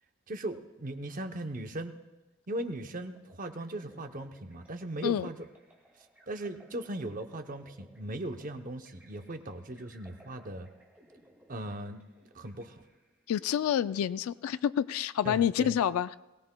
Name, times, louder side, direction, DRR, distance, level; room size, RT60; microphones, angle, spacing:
voice 1, 0.3-1.9 2.5-5.5 6.3-10.7 11.5-12.0 12.3-12.8 15.2-15.8, right 1 dB, 40° right, 7 dB, 0.7 m, -38 dB
sound 1, 2.9-13.3, right 1 dB, 5° right, 1.9 m, -61 dB
voice 2, 13.3-16.2, left 9 dB, 85° left, 15 dB, 0.3 m, -28 dB
22.0 x 16.5 x 2.2 m, 1.1 s
head